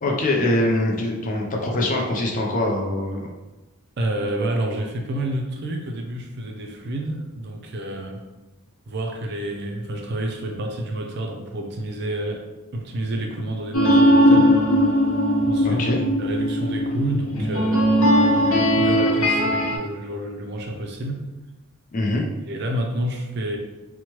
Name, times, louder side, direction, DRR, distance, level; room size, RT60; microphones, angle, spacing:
voice 1, 0.0-3.3 15.6-16.0 21.9-22.2, left 1 dB, 40° left, 0 dB, 0.5 m, -23 dB
voice 2, 4.0-8.2 8.9-12.4 12.7-14.5 15.5-15.9 16.2-21.2 22.5-23.6, right 1 dB, 55° right, 2 dB, 0.4 m, -29 dB
sound 1, 13.7-19.8, equal, 80° left, 0.7 m, -18 dB
3.0 x 2.1 x 2.9 m, 1.1 s
head